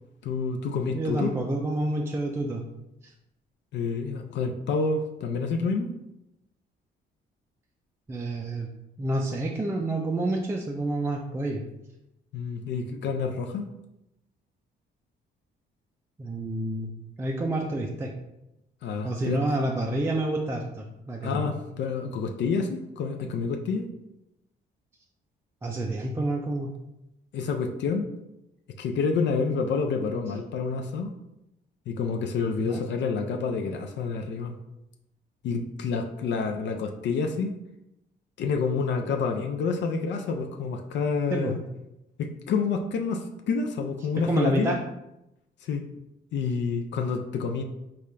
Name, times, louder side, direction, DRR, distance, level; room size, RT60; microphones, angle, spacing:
voice 1, 0.2-1.3 3.7-5.9 12.3-13.6 18.8-19.4 21.2-23.9 27.3-28.1 28.8-31.1 31.9-34.6 35.4-37.5 38.4-41.6 42.2-44.7 45.6-45.9 46.3-47.6, left 5 dB, 65° left, 3 dB, 0.4 m, -28 dB
voice 2, 0.9-2.6 8.1-8.7 9.0-11.6 16.2-16.9 17.2-18.1 19.0-21.4 25.6-26.7 32.6-32.8 41.3-41.5 44.2-44.8, right 1 dB, 15° right, 1 dB, 0.3 m, -28 dB
3.7 x 2.2 x 3.2 m, 0.88 s
cardioid pair, 90°, 20 cm